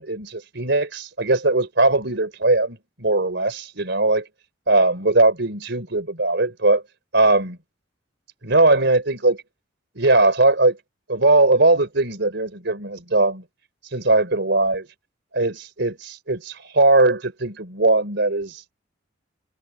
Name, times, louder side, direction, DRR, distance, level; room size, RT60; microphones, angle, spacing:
voice 1, 0.0-4.2 4.7-6.8 7.1-7.6 8.4-9.4 10.0-10.8 11.1-13.4 13.9-14.9 15.3-18.6, right 2 dB, 65° right, 4.5 m, -19 dB
head